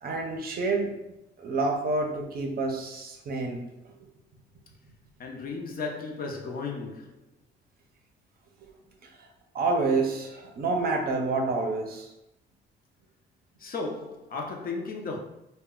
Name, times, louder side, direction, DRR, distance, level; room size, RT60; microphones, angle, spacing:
voice 1, 0.0-0.9 1.4-3.9 9.0-9.3 9.5-12.1, right 3 dB, 50° right, 0.6 m, -28 dB
voice 2, 5.2-7.1 13.6-15.2, left 4 dB, 45° left, 0.6 m, -34 dB
2.1 x 2.1 x 3.6 m
cardioid pair, 90°, 20 cm